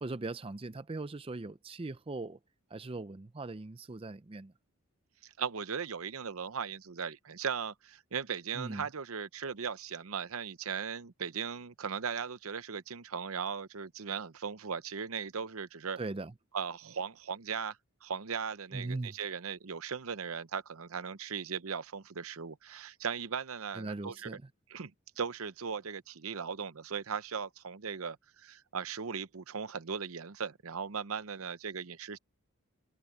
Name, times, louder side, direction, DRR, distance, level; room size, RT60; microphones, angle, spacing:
voice 1, 0.0-2.4 2.7-4.5 8.6-8.8 16.0-16.3 18.7-19.1 23.7-24.4, right 2 dB, 25° right, 0.5 m, -39 dB
voice 2, 5.2-16.0 16.5-24.4 24.7-24.9 25.2-32.2, right 6 dB, 75° right, 0.8 m, -38 dB
head